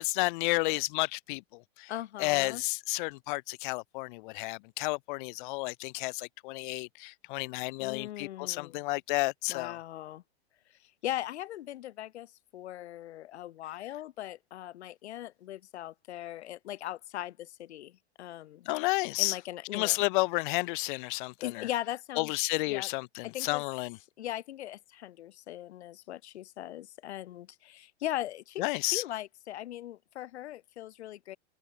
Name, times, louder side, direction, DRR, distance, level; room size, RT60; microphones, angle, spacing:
voice 1, 0.0-1.9 2.2-9.8 18.7-19.4 19.7-21.7 22.2-24.0 28.6-29.0, left 24 dB, 50° left, 0.8 m, -31 dB
voice 2, 1.9-2.6 7.8-8.8 9.5-10.2 10.8-18.7 19.2-20.1 21.4-22.3 22.6-22.9 23.2-23.6 24.2-31.4, left 13 dB, 75° left, 1.7 m, -39 dB
hypercardioid pair, 135°, 33 cm